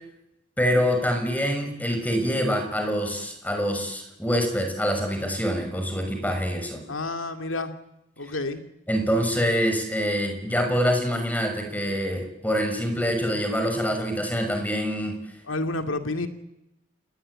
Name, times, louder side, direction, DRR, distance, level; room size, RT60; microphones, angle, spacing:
voice 1, 0.6-6.8 8.9-15.1, equal, 10° left, 5 dB, 6.3 m, -25 dB
voice 2, 6.9-7.7 8.2-8.6 15.4-16.3, left 2 dB, 85° left, 7 dB, 2.4 m, -29 dB
29.5 x 19.5 x 9.9 m, 0.84 s
head